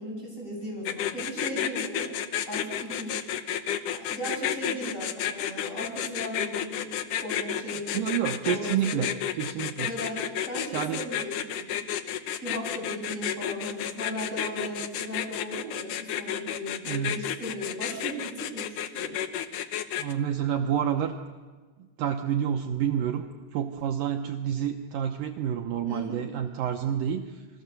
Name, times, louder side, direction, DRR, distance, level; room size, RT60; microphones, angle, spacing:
voice 1, 0.0-2.1 2.5-3.2 3.9-6.9 7.2-8.0 8.4-9.0 9.8-11.8 12.4-19.2 25.9-26.2, equal, 15° left, -1 dB, 7.8 m, -37 dB
sound 1, 0.9-20.1, left 10 dB, 85° left, 1.8 m, -31 dB
voice 2, 7.9-9.1 9.4-9.9 10.7-11.0 16.9-17.3 20.0-21.1 21.8-23.2 23.5-27.4, right 9 dB, 80° right, 4 dB, 2.0 m, -29 dB
29.0 x 21.5 x 6.9 m, 1.4 s
omnidirectional pair, 5.1 m